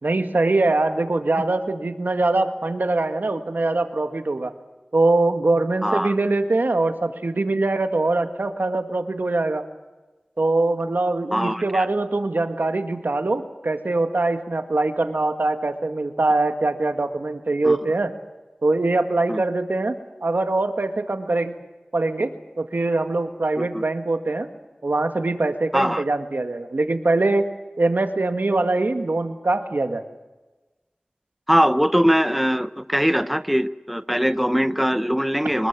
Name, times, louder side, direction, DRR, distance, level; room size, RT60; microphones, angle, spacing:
voice 1, 0.0-4.5 4.9-9.6 10.4-18.1 18.6-21.5 21.9-24.5 24.8-27.5 27.8-30.0, right 2 dB, 80° right, 7 dB, 1.9 m, -23 dB
voice 2, 5.8-6.1 11.3-11.9 17.6-17.8 19.3-19.4 23.6-23.8 25.7-26.0 31.5-35.7, equal, ahead, 12 dB, 0.7 m, -21 dB
24.5 x 20.5 x 7.5 m, 1.1 s
wide cardioid pair, 50°, 3 cm